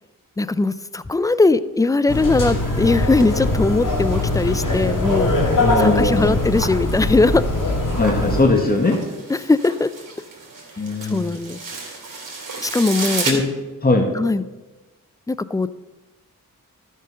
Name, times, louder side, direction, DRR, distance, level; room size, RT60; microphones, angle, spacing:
voice 1, 0.4-5.3 5.8-7.4 9.3-9.9 11.1-11.6 12.6-13.3 14.1-14.4 15.3-15.7, left 3 dB, 10° left, 16 dB, 0.5 m, -19 dB
sound 1, 2.1-8.4, left 2 dB, 60° left, 3.1 m, -21 dB
sound 2, 2.4-13.3, right 3 dB, 60° right, 3.1 m, -34 dB
voice 2, 5.6-6.4 8.0-9.0 10.8-11.3 13.3-13.4 13.8-14.1, left 2 dB, 25° left, 2 dB, 1.9 m, -19 dB
13.0 x 6.5 x 5.4 m, 1.2 s
cardioid pair, 55°, 35 cm